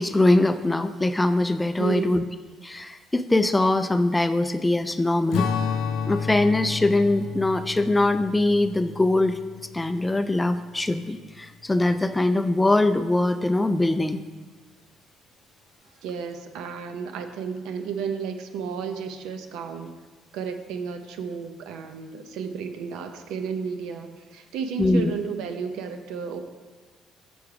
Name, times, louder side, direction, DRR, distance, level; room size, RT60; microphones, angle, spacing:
voice 1, 0.0-2.2 2.6-5.5 6.1-9.4 9.7-14.2 24.8-25.1, left 2 dB, 10° left, 10 dB, 0.3 m, -22 dB
voice 2, 1.8-2.2 16.0-20.0 20.3-26.4, right 6 dB, 80° right, 7 dB, 0.6 m, -32 dB
Strum, 5.3-10.0, left 6 dB, 80° left, 0.5 m, -30 dB
7.0 x 4.8 x 4.9 m, 1.4 s
cardioid pair, 110°, 0 cm